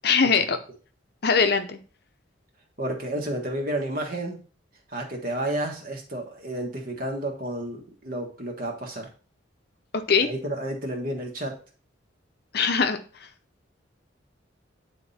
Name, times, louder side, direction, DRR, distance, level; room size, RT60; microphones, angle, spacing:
voice 1, 0.0-0.6 1.2-1.8 10.1-10.3 12.5-13.0, left 5 dB, 55° left, 8 dB, 0.7 m, -21 dB
voice 2, 2.8-4.4 4.9-9.1 10.2-11.6, right 1 dB, 45° right, 1 dB, 1.6 m, -31 dB
9.2 x 3.7 x 4.2 m, 0.38 s
head